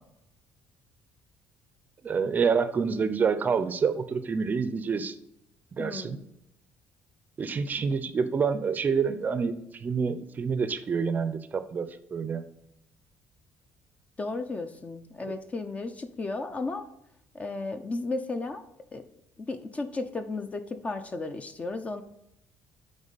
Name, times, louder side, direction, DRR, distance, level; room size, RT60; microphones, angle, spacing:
voice 1, 2.0-5.1 5.7-6.2 7.4-12.4, right 5 dB, 35° right, 11 dB, 0.5 m, -27 dB
voice 2, 5.8-6.2 14.2-16.9 17.3-18.6 18.9-19.0 19.4-22.0, left 3 dB, 25° left, 9 dB, 0.5 m, -34 dB
8.8 x 3.7 x 4.0 m, 0.81 s
cardioid pair, 110°, 5 cm